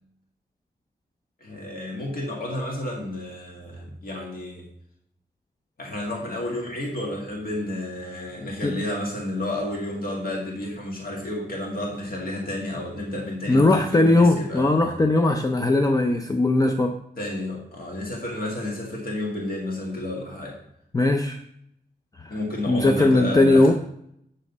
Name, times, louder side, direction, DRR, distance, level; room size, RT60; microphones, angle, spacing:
voice 1, 1.4-4.6 5.8-15.0 17.2-20.6 22.3-23.7, left 1 dB, 55° left, -2 dB, 1.9 m, -31 dB
voice 2, 13.5-16.9 20.9-21.4 22.2-22.4 22.7-23.7, left 2 dB, 20° left, 5 dB, 0.4 m, -19 dB
8.9 x 7.2 x 4.0 m, 0.73 s
wide cardioid pair, 175°, 18 cm